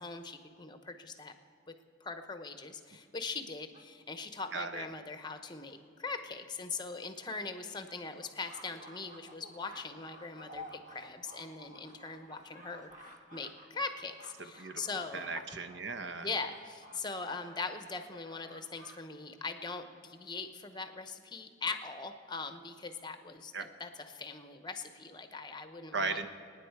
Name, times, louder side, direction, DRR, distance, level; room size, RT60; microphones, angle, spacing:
voice 1, 0.0-1.3 2.0-12.9 13.3-15.4 16.2-26.2, left 4 dB, 20° left, 8 dB, 0.8 m, -41 dB
sound 1, 2.9-4.5 5.3-5.4 5.7-5.8 6.1-6.2 6.5-6.6 7.1-19.0 19.3-19.7, left 1 dB, 40° right, 1.4 m, -54 dB
voice 2, 4.5-4.9 14.6-14.7 15.1-16.3 23.5-23.7 25.9-26.3, right 4 dB, 60° right, 8 dB, 0.8 m, -36 dB
26.0 x 9.7 x 4.7 m, 2.4 s
head